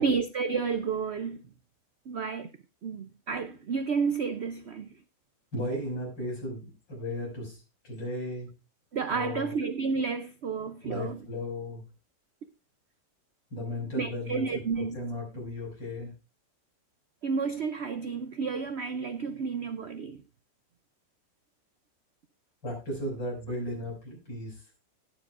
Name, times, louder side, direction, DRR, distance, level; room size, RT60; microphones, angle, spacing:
voice 1, 0.0-1.4 2.1-2.5 2.8-4.9 8.9-11.3 13.9-15.0 17.2-20.2, right 5 dB, 75° right, 0.6 m, -31 dB
voice 2, 5.5-8.5 9.1-9.5 10.6-11.8 13.5-16.1 22.6-24.6, left 1 dB, 85° left, 6.5 m, -36 dB
19.5 x 7.2 x 2.4 m
omnidirectional pair, 1.9 m